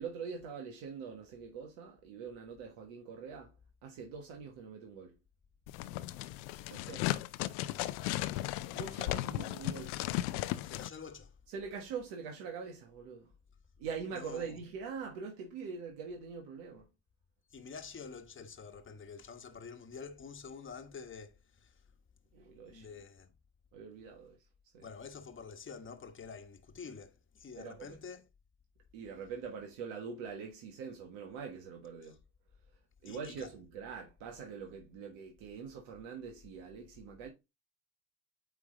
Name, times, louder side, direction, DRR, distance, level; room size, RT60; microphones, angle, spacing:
voice 1, 0.0-3.5 3.8-5.1 6.7-7.1 8.7-10.0 11.5-13.3 13.8-16.9 22.3-22.9 23.7-24.4 24.7-24.9 27.6-28.0 28.9-32.2 33.0-37.3, right 6 dB, 75° right, 1.5 m, -43 dB
sound 1, 5.7-10.9, left 15 dB, 75° left, 0.7 m, -36 dB
voice 2, 10.6-11.4 14.1-14.6 17.5-21.8 22.7-23.3 24.8-28.2 32.0-32.2 33.0-33.5, left 5 dB, 25° left, 1.2 m, -48 dB
8.8 x 3.5 x 3.8 m
hypercardioid pair, 75°, 44 cm